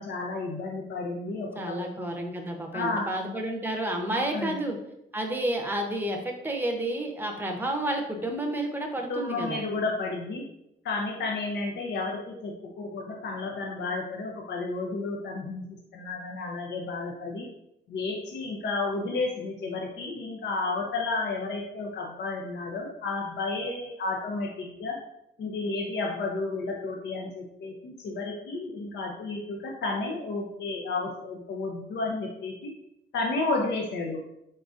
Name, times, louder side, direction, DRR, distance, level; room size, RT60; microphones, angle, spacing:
voice 1, 0.0-1.9 2.7-3.1 4.1-4.6 9.1-10.4 10.8-15.6 15.9-17.5 17.9-25.0 25.4-32.7 33.1-34.2, left 3 dB, 60° left, 0 dB, 0.6 m, -32 dB
voice 2, 1.5-4.8 5.1-9.6, right 1 dB, 10° right, 2 dB, 0.7 m, -30 dB
3.9 x 3.8 x 2.5 m, 0.82 s
cardioid pair, 90°, 20 cm